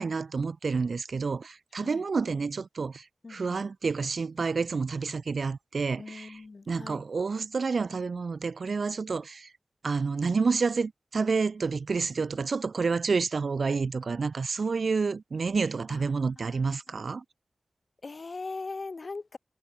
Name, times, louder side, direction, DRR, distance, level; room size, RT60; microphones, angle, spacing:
voice 1, 0.0-6.4 6.7-9.5 9.8-17.2, right 4 dB, 75° right, 0.5 m, -29 dB
voice 2, 3.2-3.6 6.0-7.0 15.9-16.1 16.4-16.6 18.0-19.4, left 3 dB, 55° left, 1.0 m, -40 dB
wide cardioid pair, 85°, 0 cm